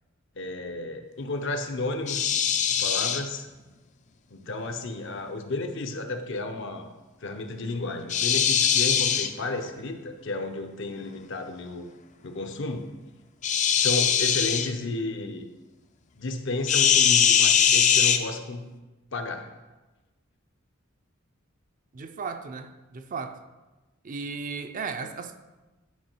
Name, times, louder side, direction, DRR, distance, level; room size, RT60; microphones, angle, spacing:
voice 1, 0.4-2.4 2.7-3.5 4.3-6.9 7.2-11.9 12.2-12.9 13.8-15.5 16.2-18.7 19.1-19.5, left 2 dB, 60° left, 0.8 m, -32 dB
sound 1, 2.1-3.2 8.1-9.3 13.4-14.7 16.7-18.2, left 8 dB, 35° left, 0.4 m, -21 dB
voice 2, 21.9-23.4 24.0-25.4, right 5 dB, 40° right, 0.5 m, -35 dB
10.5 x 4.8 x 4.5 m
head